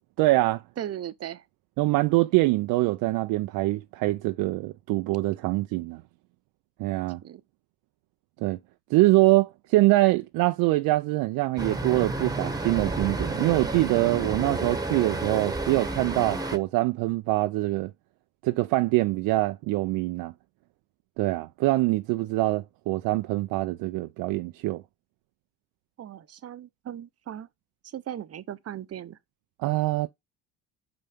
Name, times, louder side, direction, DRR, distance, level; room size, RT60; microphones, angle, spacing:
voice 1, 0.2-0.6 1.8-6.0 6.8-7.2 8.4-8.6 8.9-17.9 18.4-20.3 21.2-24.8 29.6-30.1, right 19 dB, 65° right, 0.5 m, -24 dB
voice 2, 0.8-1.4 7.2-7.4 26.0-27.5 27.8-29.2, right 11 dB, 40° right, 0.9 m, -37 dB
Traffic noise roadway noise, 11.6-16.6, right 2 dB, 10° right, 1.3 m, -31 dB
5.8 x 5.5 x 5.0 m
supercardioid pair, 70°, 38 cm